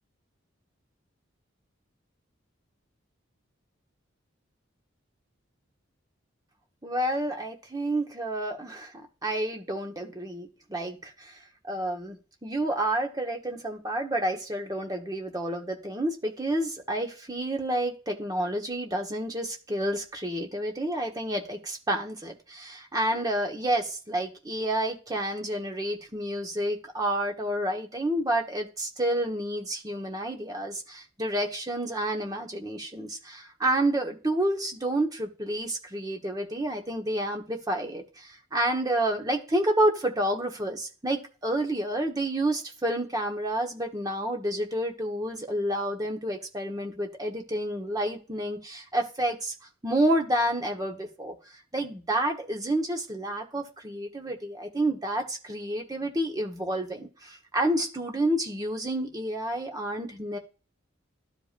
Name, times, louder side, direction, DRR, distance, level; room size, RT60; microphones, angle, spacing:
voice 1, 6.8-8.9 9.2-49.5 49.8-51.3 51.7-60.4, right 1 dB, 20° right, 2 dB, 1.3 m, -29 dB
12.0 x 5.2 x 2.6 m, 0.34 s
head